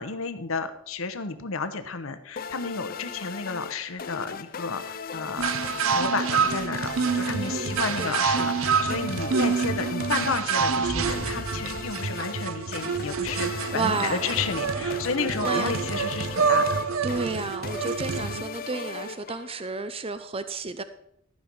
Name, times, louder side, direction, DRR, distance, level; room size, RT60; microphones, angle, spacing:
voice 1, 0.0-5.5 5.9-16.8, left 4 dB, 80° left, 10 dB, 0.9 m, -32 dB
sound 1, 2.4-19.8, left 6 dB, 45° left, 0.5 m, -38 dB
sound 2, 5.4-18.4, right 5 dB, 80° right, 0.7 m, -27 dB
voice 2, 7.4-8.2 13.7-14.4 15.4-15.7 17.0-20.8, right 4 dB, 30° right, 11 dB, 0.6 m, -32 dB
sound 3, 10.7-12.0 12.8-15.4, equal, 5° left, 1.0 m, -41 dB
13.0 x 5.4 x 6.1 m, 0.73 s
head